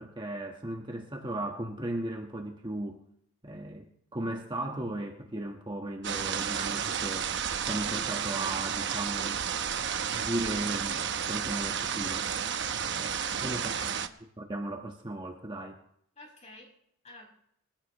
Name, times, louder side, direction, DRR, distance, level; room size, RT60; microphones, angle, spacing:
voice 1, 0.0-3.0 3.4-7.3 7.6-9.5 10.1-12.5 12.9-13.9 14.4-15.8, right 1 dB, 20° right, 2 dB, 1.3 m, -36 dB
sound 1, 6.0-14.1, right 7 dB, 60° right, 0.9 m, -32 dB
voice 2, 12.9-14.1 16.2-16.7 17.0-17.3, left 1 dB, 35° left, 0 dB, 5.6 m, -50 dB
26.0 x 15.0 x 3.1 m, 0.70 s
head